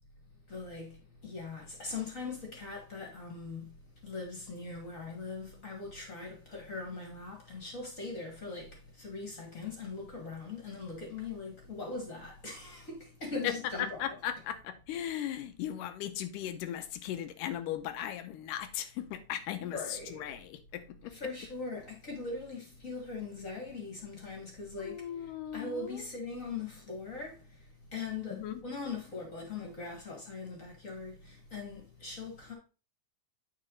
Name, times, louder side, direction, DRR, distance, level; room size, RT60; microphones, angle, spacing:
voice 1, 0.5-3.7 4.0-14.0 19.6-20.3 21.1-32.5, left 4 dB, 30° left, 1.6 m, -41 dB
voice 2, 13.4-21.2 24.8-26.0 28.3-28.6, left 10 dB, 85° left, 2.3 m, -37 dB
8.2 x 4.5 x 3.8 m
omnidirectional pair, 3.7 m